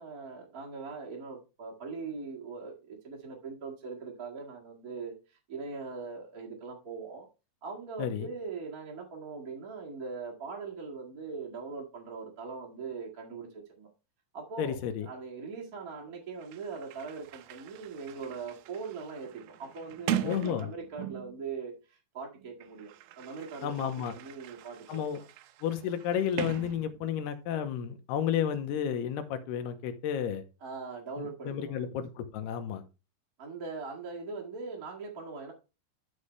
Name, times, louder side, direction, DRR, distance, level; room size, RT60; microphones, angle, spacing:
voice 1, 0.0-7.3 7.6-13.9 14.3-14.8 15.0-25.2 30.6-31.9 33.4-35.5, right 4 dB, 40° right, -1 dB, 1.2 m, -41 dB
voice 2, 14.6-15.1 20.2-20.7 23.6-24.1 24.9-25.2 25.6-30.4 31.2-32.8, left 9 dB, 85° left, 7 dB, 3.0 m, -32 dB
Sliding door, 16.1-16.2 16.4-21.4 22.4-27.3, right 11 dB, 80° right, 2.1 m, -40 dB
12.0 x 5.3 x 3.3 m, 0.30 s
omnidirectional pair, 4.7 m